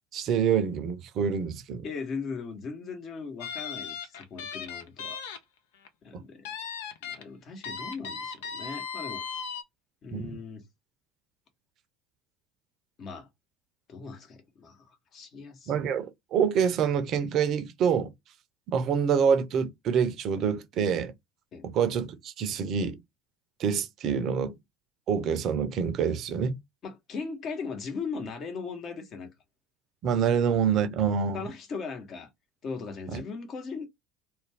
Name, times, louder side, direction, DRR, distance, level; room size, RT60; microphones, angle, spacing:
voice 1, 0.1-1.8 10.1-10.3 15.7-18.1 18.7-21.1 21.6-23.0 23.6-24.6 25.1-26.6 30.0-31.5 33.1-33.2, right 7 dB, 50° right, 0.6 m, -26 dB
voice 2, 1.8-5.2 6.0-6.5 7.0-9.2 10.0-10.7 13.0-13.3 13.9-15.7 21.5-21.7 26.8-29.3 31.3-32.3 32.6-33.9, left 5 dB, 45° left, 1.0 m, -38 dB
sound 1, 3.4-5.4 5.7-5.9 6.4-7.2 7.6-9.6, left 6 dB, 70° left, 0.5 m, -37 dB
2.5 x 2.2 x 3.3 m
hypercardioid pair, 75°, 0 cm